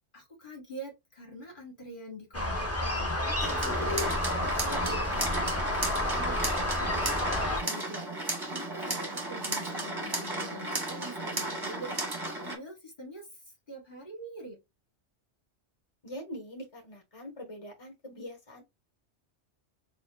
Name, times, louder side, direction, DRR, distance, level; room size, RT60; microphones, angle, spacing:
voice 1, 0.1-8.0 8.4-13.4 13.7-14.6, right 1 dB, 50° left, 1.6 m, -45 dB
sound 1, 2.3-7.6, left 1 dB, 15° left, 0.9 m, -30 dB
sound 2, 3.4-12.6, right 2 dB, 20° right, 1.0 m, -34 dB
voice 2, 16.0-18.6, equal, 30° left, 1.5 m, -43 dB
6.7 x 2.2 x 2.4 m
omnidirectional pair, 1.2 m